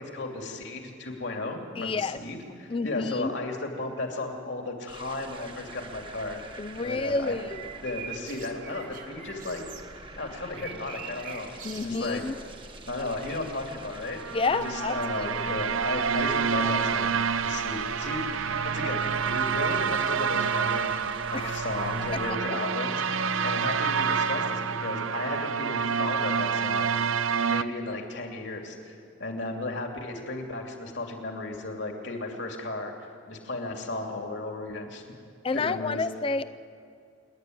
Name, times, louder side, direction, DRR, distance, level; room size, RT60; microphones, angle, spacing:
voice 1, 0.0-7.3 7.8-9.6 10.2-12.2 12.9-14.2 14.6-21.0 21.3-27.0 27.5-28.9 29.2-32.9 33.3-35.0 35.5-36.1, left 2 dB, 65° left, 2 dB, 2.8 m, -34 dB
voice 2, 1.8-2.2 2.7-3.3 6.6-7.6 11.6-12.3 14.3-15.0 15.3-15.4 21.3-21.5 35.4-36.4, left 3 dB, 25° left, 12 dB, 0.4 m, -29 dB
sound 1, 4.9-22.3, right 2 dB, 25° right, 1.1 m, -46 dB
sound 2, 7.2-9.9 10.5-12.3 13.2-13.4, right 7 dB, 40° right, 1.6 m, -44 dB
sound 3, 14.1-27.6, right 6 dB, 85° right, 0.7 m, -28 dB
27.5 x 10.5 x 9.3 m, 2.3 s
head